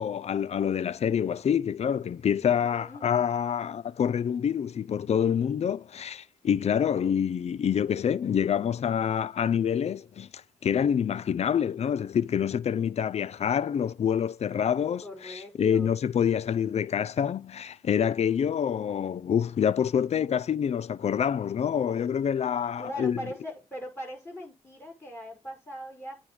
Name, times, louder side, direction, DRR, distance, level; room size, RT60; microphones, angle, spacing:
voice 1, 0.0-10.3 10.6-23.2, left 8 dB, 45° left, 0.4 m, -27 dB
voice 2, 2.3-3.1 15.0-16.0 22.8-26.2, equal, 15° left, 5.7 m, -40 dB
9.2 x 3.5 x 4.9 m
hypercardioid pair, 40°, 15 cm